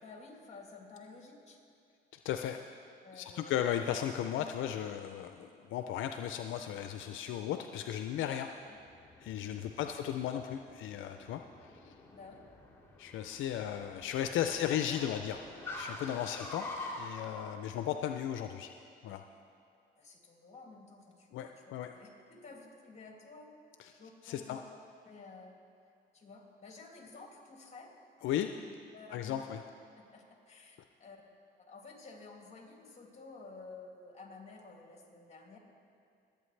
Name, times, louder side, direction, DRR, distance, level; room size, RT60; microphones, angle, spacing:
voice 1, 0.0-1.6 3.0-3.5 8.6-8.8 9.6-9.9 12.1-12.4 14.3-15.4 16.2-16.4 20.0-21.5 21.9-23.5 24.0-24.6 25.0-25.6 26.1-27.9 28.9-29.5 30.0-31.3 31.7-35.6, left 3 dB, 35° left, 0 dB, 2.4 m, -52 dB
voice 2, 2.2-2.6 3.1-8.5 9.2-11.4 11.8-11.9 13.0-15.4 15.7-16.6 17.0-18.7 19.0-19.2 21.3-21.9 24.2-24.6 28.2-28.5 29.1-29.6, left 10 dB, 80° left, 6 dB, 0.5 m, -35 dB
Car, 8.6-17.5, left 2 dB, 10° left, 2.2 m, -47 dB
22.5 x 8.4 x 3.3 m, 2.5 s
cardioid pair, 90°, 20 cm